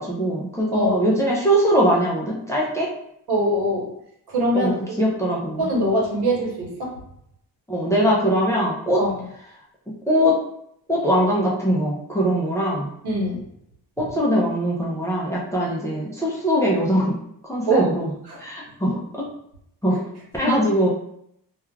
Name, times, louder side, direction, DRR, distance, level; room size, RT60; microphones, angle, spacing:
voice 1, 0.0-2.9 4.5-4.7 5.0-5.6 7.7-9.0 10.1-10.4 10.9-12.9 14.0-17.1 17.5-18.1 18.4-19.0 19.8-20.0 20.3-20.9, equal, 10° left, -4 dB, 0.4 m, -21 dB
voice 2, 3.3-3.9 4.3-4.8 5.6-6.9 9.0-9.2 13.0-13.4 17.7-17.9 18.3-18.4 18.8-19.0 19.9-20.0, right 1 dB, 75° right, -2 dB, 1.0 m, -23 dB
2.3 x 2.3 x 3.1 m, 0.73 s
wide cardioid pair, 150°, 39 cm